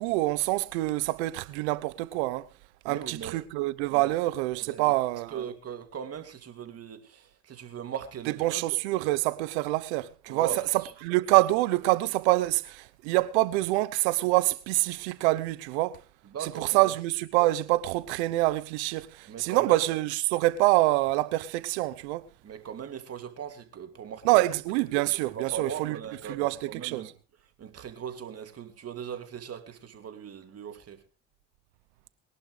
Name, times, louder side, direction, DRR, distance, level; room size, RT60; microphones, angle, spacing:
voice 1, 0.0-2.5 2.8-5.4 8.4-10.5 11.0-16.0 16.4-22.3 24.2-26.0 26.3-26.6 26.8-27.0, right 19 dB, 75° right, 1.0 m, -26 dB
voice 2, 2.8-3.4 3.9-4.1 4.6-4.9 5.3-8.7 10.3-10.9 16.2-16.9 19.3-19.8 22.4-24.4 24.7-27.1 27.6-31.0, right 8 dB, 45° right, 2.6 m, -39 dB
22.5 x 11.5 x 3.3 m
hypercardioid pair, 60°, 34 cm